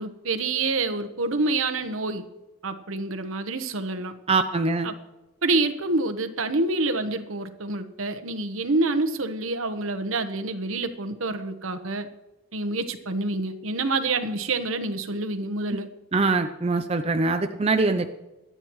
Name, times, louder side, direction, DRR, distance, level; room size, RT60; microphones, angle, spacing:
voice 1, 0.0-2.3 2.6-4.1 4.8-4.9 5.4-12.1 12.5-15.9, right 2 dB, 70° right, 8 dB, 1.1 m, -27 dB
voice 2, 4.3-4.9 16.1-18.1, right 3 dB, 30° right, 7 dB, 0.5 m, -23 dB
24.0 x 9.0 x 3.1 m, 1.0 s
head